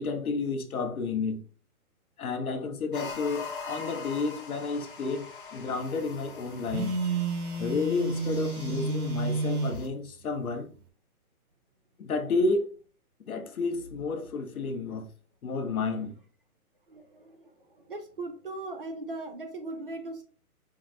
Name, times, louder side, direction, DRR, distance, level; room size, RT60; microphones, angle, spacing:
voice 1, 0.0-1.4 2.2-6.9 7.6-10.7 12.0-12.7 13.3-15.0 15.4-16.1, left 3 dB, 70° left, 1.1 m, -31 dB
sound 1, 2.9-9.9, left 5 dB, 35° left, 0.6 m, -43 dB
Telephone, 6.7-9.8, right 3 dB, 75° right, 0.9 m, -30 dB
voice 2, 16.9-17.5 17.9-20.2, right 2 dB, 40° right, 0.6 m, -38 dB
5.0 x 2.5 x 3.1 m
hypercardioid pair, 175°, 45 cm